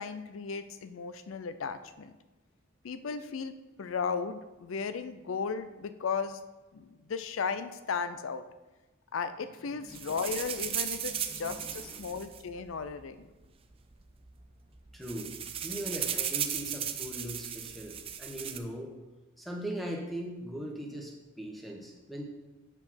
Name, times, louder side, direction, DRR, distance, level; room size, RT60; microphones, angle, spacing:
voice 1, 0.0-2.1 2.8-6.4 6.7-8.4 9.1-13.3, left 5 dB, 80° left, 11 dB, 0.4 m, -35 dB
voice 2, 9.7-10.2 10.4-10.6 11.0-12.2 14.9-15.3 15.6-18.9 19.4-22.2, equal, ahead, 0 dB, 1.0 m, -40 dB
sound 1, 9.9-13.1 13.9-14.0 14.3-14.5 14.8-18.6, right 9 dB, 30° right, 0.4 m, -36 dB
7.6 x 4.9 x 5.7 m, 1.1 s
head